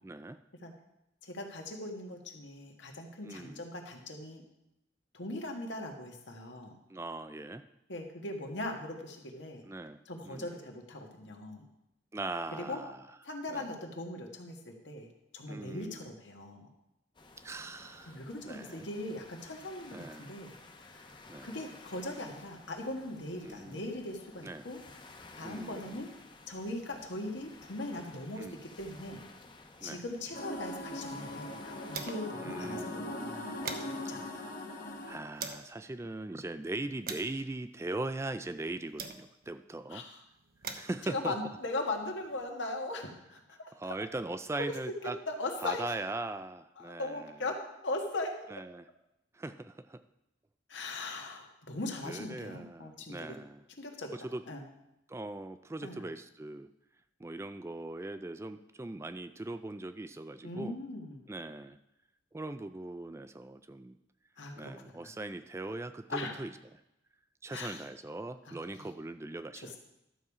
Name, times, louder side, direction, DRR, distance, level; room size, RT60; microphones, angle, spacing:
voice 1, 0.0-0.4 3.2-3.7 6.9-7.6 9.6-10.5 12.1-13.0 13.5-13.7 15.5-16.1 17.4-18.9 19.9-20.3 21.3-21.5 23.4-23.9 24.4-24.7 25.4-26.0 28.4-28.6 29.8-30.0 32.3-33.3 35.1-40.0 40.7-41.4 43.7-45.2 45.6-47.4 48.5-48.9 49.3-50.0 52.1-53.6 54.1-54.4 55.1-56.7 57.2-60.8 61.3-61.8 62.3-64.0 64.6-66.5 67.4-69.7, right 2 dB, 15° right, 11 dB, 0.3 m, -40 dB
voice 2, 1.2-4.4 5.1-6.7 7.9-9.6 10.0-11.7 12.7-12.8 13.2-15.1 15.3-16.7 18.1-20.5 20.8-21.0 21.4-24.8 25.3-26.1 26.5-29.2 29.8-34.5 39.9-40.2 41.0-43.9 45.3-45.8 46.8-47.5 47.8-48.5 50.7-53.4 53.8-54.1 54.5-54.6 55.8-56.0 60.4-61.3 64.4-64.9 66.1-66.3 67.5-67.8 68.4-68.5 69.6-69.8, left 2 dB, 75° left, 2 dB, 1.7 m, -39 dB
sound 1, 17.1-32.0, left 3 dB, 25° left, 0.9 m, -54 dB
sound 2, 30.3-35.2, left 1 dB, 50° left, 1.2 m, -40 dB
sound 3, 30.6-32.5 32.8-32.9 33.2-35.7 36.4-39.6 40.3-42.5, right 5 dB, 50° right, 0.9 m, -46 dB
12.0 x 7.2 x 4.8 m, 0.86 s
head